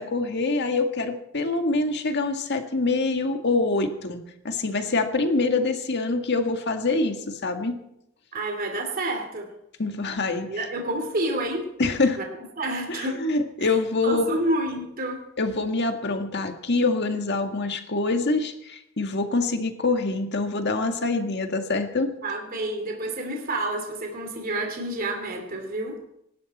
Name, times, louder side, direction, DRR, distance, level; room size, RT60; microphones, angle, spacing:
voice 1, 0.0-7.8 9.8-10.5 11.8-12.2 12.9-14.4 15.4-22.1, left 3 dB, 55° left, 6 dB, 1.8 m, -25 dB
voice 2, 8.3-9.5 10.5-11.7 12.2-12.3 12.6-13.2 13.6-13.7 14.0-15.2 22.2-26.0, right 1 dB, 45° right, 3 dB, 2.7 m, -29 dB
25.0 x 12.0 x 4.2 m, 0.81 s
head